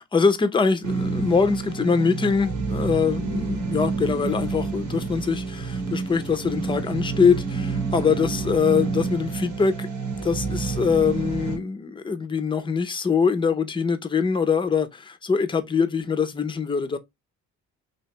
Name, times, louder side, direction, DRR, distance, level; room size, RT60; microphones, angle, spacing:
voice 1, 0.1-17.0, left 5 dB, 15° left, 0.5 m, -23 dB
sound 1, 0.8-11.6, right 4 dB, 80° right, 0.9 m, -29 dB
3.2 x 2.8 x 2.8 m
cardioid pair, 90°, 30 cm